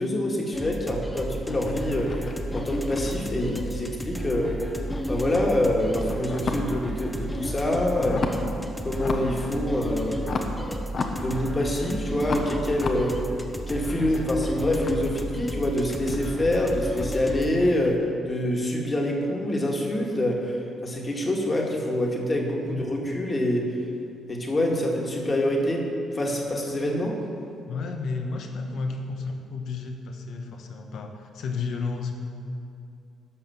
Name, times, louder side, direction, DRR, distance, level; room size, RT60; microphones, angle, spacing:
voice 1, 0.0-4.6 5.1-8.3 8.8-10.2 11.2-13.2 13.7-23.8 24.3-25.9 26.1-27.2, left 1 dB, 30° left, 0 dB, 1.9 m, -26 dB
sound 1, 0.5-17.5, right 1 dB, 10° left, 1.0 m, -33 dB
sound 2, 1.5-4.4 4.6-6.9 7.2-8.5 8.9-9.4 9.7-11.8 12.2-18.0, left 4 dB, 50° left, 1.1 m, -35 dB
voice 2, 13.8-14.2 22.7-22.9 27.7-32.2, left 4 dB, 70° left, 4 dB, 1.3 m, -32 dB
12.0 x 5.8 x 7.0 m, 2.6 s
cardioid pair, 90°, 0 cm